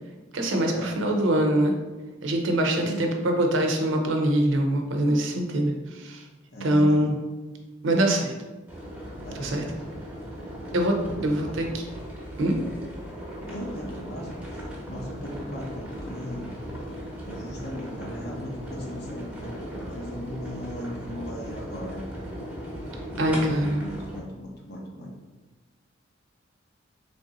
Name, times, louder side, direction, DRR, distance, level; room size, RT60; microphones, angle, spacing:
voice 1, 0.3-1.7 2.2-6.2 6.6-7.2 7.8-8.3 9.4-9.6 10.7-11.0 11.2-11.6 12.4-12.6 23.2-23.8, right 1 dB, 85° right, 3 dB, 0.6 m, -23 dB
voice 2, 6.5-7.1 9.2-9.7 11.1-11.7 13.5-16.5 17.2-22.0 23.1-25.2, equal, 55° left, -2 dB, 0.8 m, -38 dB
sound 1, 8.7-24.2, equal, 10° right, 0.9 m, -38 dB
3.4 x 2.6 x 3.8 m, 1.2 s
head